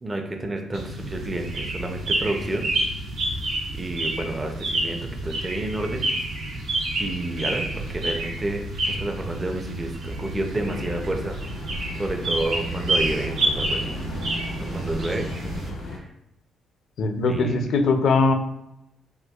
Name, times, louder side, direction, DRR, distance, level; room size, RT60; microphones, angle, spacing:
voice 1, 0.0-2.7 3.8-6.1 7.0-11.4 11.9-14.4 14.7-15.3 15.8-16.1 17.3-17.7, right 2 dB, 25° right, 3 dB, 0.5 m, -30 dB
sound 1, 0.7-15.7, right 1 dB, 75° right, 0.8 m, -29 dB
sound 2, 10.6-16.0, left 1 dB, 85° left, 0.9 m, -36 dB
voice 2, 17.0-18.3, left 3 dB, 65° left, 6 dB, 0.4 m, -20 dB
4.2 x 2.3 x 2.3 m, 0.84 s
cardioid pair, 90°, 0 cm